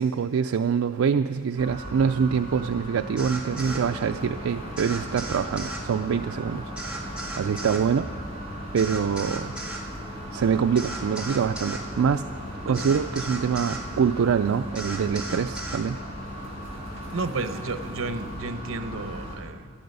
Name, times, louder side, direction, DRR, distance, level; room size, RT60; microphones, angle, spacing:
voice 1, 0.0-8.1 8.7-9.5 10.3-12.3 12.7-16.0, right 6 dB, 90° right, 7 dB, 0.4 m, -25 dB
sound 1, 1.6-19.4, equal, 70° left, 4.6 m, -38 dB
sound 2, 3.2-3.8 4.8-5.8 6.8-7.9 8.8-9.9 10.8-11.9 12.8-13.8 14.7-15.8, right 2 dB, 5° right, 2.1 m, -36 dB
sound 3, 3.5-19.3, right 1 dB, 30° right, 4.2 m, -42 dB
voice 2, 17.1-19.7, right 3 dB, 75° right, 10 dB, 0.9 m, -32 dB
17.0 x 12.5 x 5.4 m, 2.3 s
head